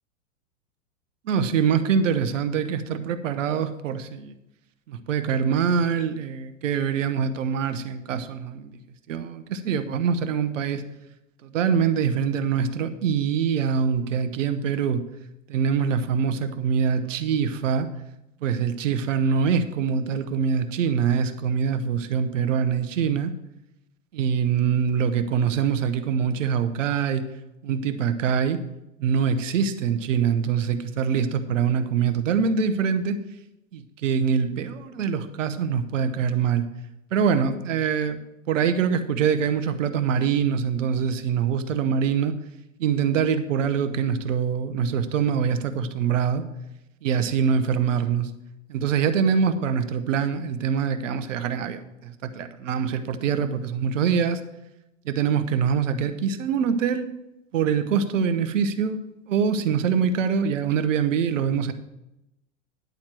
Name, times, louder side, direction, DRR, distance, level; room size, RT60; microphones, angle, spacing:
voice 1, 1.2-4.3 4.9-8.7 9.1-10.8 11.4-15.0 15.5-17.9 18.4-23.3 24.1-27.3 27.6-28.6 29.0-33.2 33.7-36.7 37.1-38.2 38.5-42.4 42.8-46.4 47.0-48.3 48.7-54.4 55.0-57.1 57.5-59.0 59.3-61.7, right 7 dB, 70° right, 11 dB, 1.0 m, -24 dB
10.5 x 4.4 x 7.6 m, 0.90 s
hypercardioid pair, 100°, 39 cm